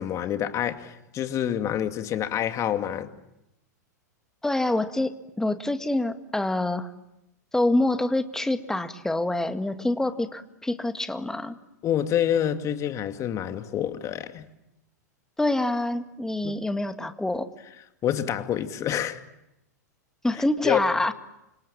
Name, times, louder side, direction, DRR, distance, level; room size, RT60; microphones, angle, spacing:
voice 1, 0.0-3.1 11.8-14.5 16.4-16.5 18.0-19.2 20.6-20.8, left 10 dB, 35° left, 2.4 m, -27 dB
voice 2, 4.4-6.9 7.5-11.6 15.4-17.5 20.2-21.1, left 2 dB, 5° left, 1.9 m, -26 dB
29.5 x 27.0 x 7.4 m
hypercardioid pair, 100°, 9 cm